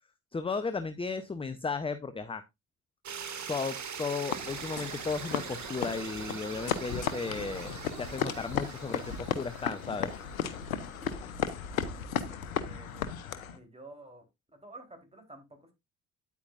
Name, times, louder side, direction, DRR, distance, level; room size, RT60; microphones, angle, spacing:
voice 1, 0.3-2.4 3.5-7.7 8.0-10.1, left 4 dB, 15° left, 11 dB, 0.8 m, -35 dB
sound 1, 3.0-11.1, right 7 dB, 45° right, 2.0 m, -42 dB
sound 2, 4.3-13.6, left 8 dB, 80° left, 0.9 m, -35 dB
voice 2, 12.3-13.1 13.5-14.2 14.5-15.7, right 2 dB, 15° right, 4 dB, 3.8 m, -51 dB
9.7 x 8.3 x 2.5 m, 0.21 s
figure-of-eight pair, 50°, 41 cm